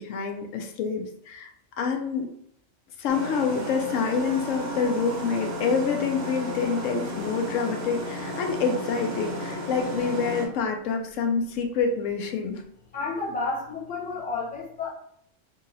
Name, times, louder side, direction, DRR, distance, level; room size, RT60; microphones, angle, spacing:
voice 1, 0.0-1.5 1.8-2.3 3.0-12.6, left 5 dB, 80° left, 4 dB, 1.0 m, -27 dB
sound 1, 3.1-10.5, equal, 40° right, 0.9 m, -33 dB
voice 2, 12.9-14.9, left 3 dB, 10° left, -4 dB, 0.6 m, -31 dB
2.8 x 2.7 x 3.8 m, 0.70 s
omnidirectional pair, 1.3 m